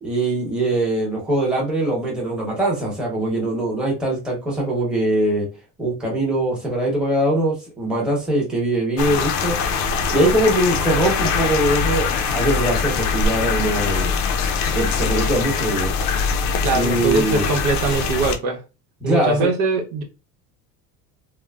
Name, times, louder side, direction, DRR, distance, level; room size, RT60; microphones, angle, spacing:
voice 1, 0.0-5.5 5.8-9.6 10.1-14.1 14.7-15.9 16.7-17.5 19.0-19.5, right 1 dB, ahead, 0.9 m, -22 dB
sound 1, 9.0-18.4, left 5 dB, 60° left, 0.5 m, -22 dB
voice 2, 16.6-18.6 19.0-20.0, right 3 dB, 80° right, 0.9 m, -22 dB
3.0 x 2.0 x 2.3 m
cardioid pair, 150°, 32 cm